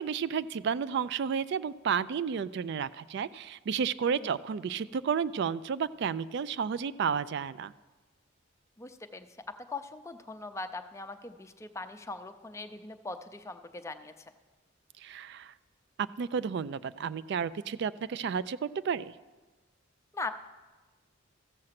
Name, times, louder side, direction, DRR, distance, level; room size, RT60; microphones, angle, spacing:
voice 1, 0.0-7.7 15.0-15.5 16.2-19.1, right 6 dB, 55° right, 16 dB, 0.3 m, -32 dB
voice 2, 8.8-9.3 9.7-14.3 20.1-20.3, left 3 dB, 15° left, 7 dB, 0.5 m, -40 dB
14.0 x 7.7 x 5.8 m, 1.3 s
head